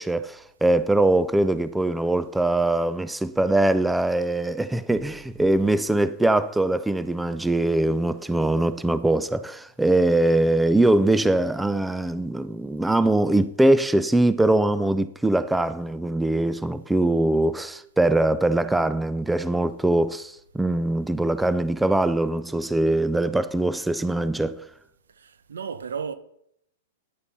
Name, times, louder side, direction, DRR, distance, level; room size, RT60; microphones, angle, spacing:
voice 1, 0.0-24.6, right 2 dB, 5° right, 0.5 m, -22 dB
voice 2, 25.2-26.1, right 6 dB, 85° right, 0.9 m, -33 dB
10.5 x 7.0 x 5.5 m
hypercardioid pair, 120°, 0 cm